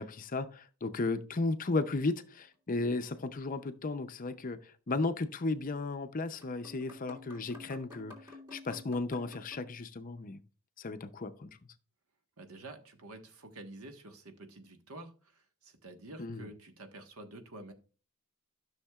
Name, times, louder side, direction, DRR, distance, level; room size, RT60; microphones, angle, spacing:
voice 1, 0.0-10.4 10.8-11.6 16.2-16.5, left 3 dB, 35° left, 0.6 m, -35 dB
sound 1, 2.1-3.3 3.6-3.7 5.1-5.3 5.9-6.0 6.3-9.7, left 2 dB, 20° right, 3.0 m, -52 dB
voice 2, 12.4-17.7, right 2 dB, 70° right, 1.3 m, -49 dB
13.0 x 6.4 x 2.3 m
head